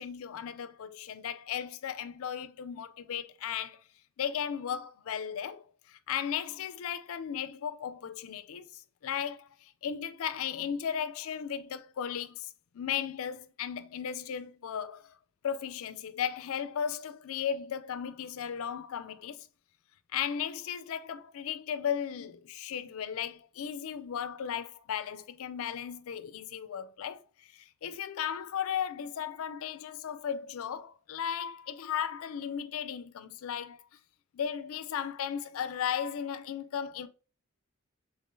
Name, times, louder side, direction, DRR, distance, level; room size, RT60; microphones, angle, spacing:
voice 1, 0.0-3.8 4.2-15.1 15.4-19.5 20.1-27.2 27.5-33.8 34.3-37.1, left 8 dB, 65° left, 0.4 m, -36 dB
3.6 x 3.6 x 2.6 m
head